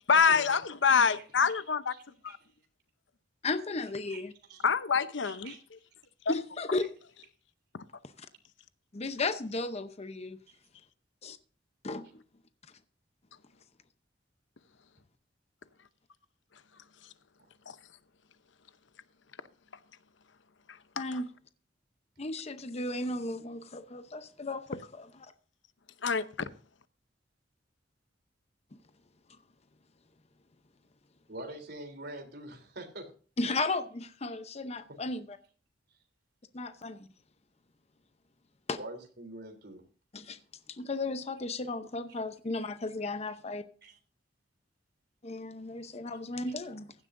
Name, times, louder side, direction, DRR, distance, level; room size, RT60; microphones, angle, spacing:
voice 1, 0.1-1.9 2.2-2.4 4.6-5.5 6.3-6.4 17.7-17.8 21.0-21.2 26.0-26.2, left 6 dB, 85° left, 0.8 m, -26 dB
voice 2, 1.9-2.4 4.1-4.2 4.5-4.6 5.2-5.6 31.3-33.1 38.7-39.8 43.8-44.0 46.3-46.7, right 1 dB, 60° right, 3.4 m, -45 dB
voice 3, 3.4-4.3 6.3-6.9 8.9-10.4 11.2-11.4 11.8-12.0 21.0-21.3 22.2-25.1 33.4-35.2 36.5-37.0 38.7-38.8 40.1-40.4 40.7-43.6 45.2-46.9, left 3 dB, 35° left, 0.8 m, -34 dB
15.5 x 11.5 x 2.6 m
head